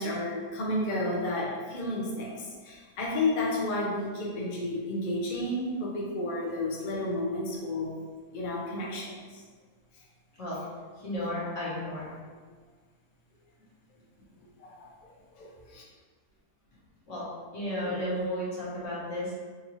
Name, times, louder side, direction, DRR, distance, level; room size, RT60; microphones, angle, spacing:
voice 1, 0.0-7.9 8.3-9.4 14.6-15.8, left 1 dB, 65° left, -4 dB, 0.5 m, -32 dB
voice 2, 10.9-12.1 17.1-17.2 17.5-19.3, left 1 dB, 50° left, -9 dB, 1.6 m, -33 dB
3.9 x 2.7 x 3.0 m, 1.5 s
omnidirectional pair, 1.8 m